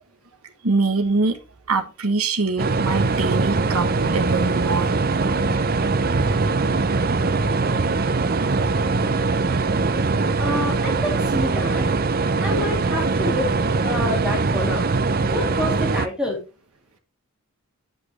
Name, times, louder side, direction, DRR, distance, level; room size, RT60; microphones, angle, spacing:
voice 1, 0.6-1.4 1.7-4.9 5.3-5.4 6.1-6.3 7.3-7.4, right 3 dB, 90° right, 5 dB, 1.4 m, -23 dB
sound 1, 2.6-16.1, right 3 dB, 45° right, 0.6 m, -22 dB
voice 2, 10.1-11.9 12.4-13.5 13.8-14.8 15.3-16.4, left 1 dB, 5° right, -1 dB, 2.6 m, -28 dB
8.5 x 7.8 x 3.1 m, 0.30 s
head